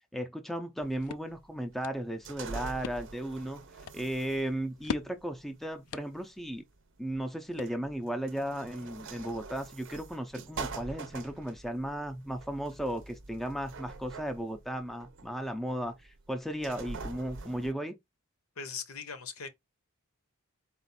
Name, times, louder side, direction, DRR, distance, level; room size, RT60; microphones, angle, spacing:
voice 1, 0.1-3.6 3.9-6.6 7.0-18.0, right 1 dB, ahead, 0.5 m, -35 dB
sound 1, 0.6-8.2, left 6 dB, 85° left, 0.4 m, -45 dB
sound 2, 0.8-17.7, right 4 dB, 55° right, 0.6 m, -45 dB
voice 2, 18.6-19.5, left 6 dB, 70° left, 0.8 m, -40 dB
4.1 x 2.5 x 4.0 m
head